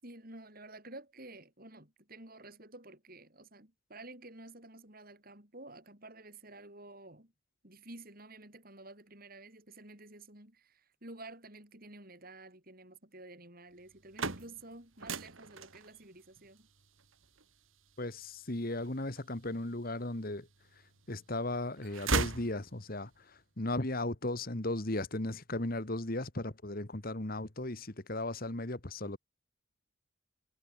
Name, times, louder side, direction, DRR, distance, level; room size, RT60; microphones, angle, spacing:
voice 1, 0.0-7.3 7.6-16.7, right 2 dB, 45° right, 7.6 m, -51 dB
sound 1, 13.8-19.8 20.4-21.2 21.5-23.1, right 4 dB, 75° right, 2.7 m, -38 dB
voice 2, 18.0-20.5 21.1-29.2, left 2 dB, 45° left, 1.8 m, -36 dB
head